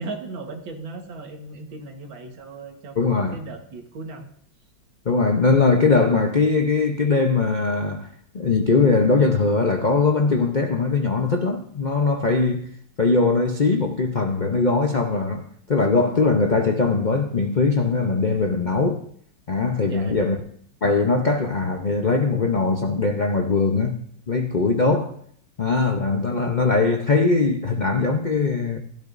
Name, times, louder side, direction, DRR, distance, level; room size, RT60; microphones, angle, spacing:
voice 1, 0.0-4.3 19.9-20.3, right 3 dB, 75° right, 2.2 m, -37 dB
voice 2, 3.0-3.4 5.1-8.1 8.3-12.7 13.0-19.0 19.5-20.4 20.8-25.1 25.6-28.8, left 3 dB, 85° left, 0.4 m, -21 dB
16.0 x 12.0 x 2.6 m
omnidirectional pair, 2.1 m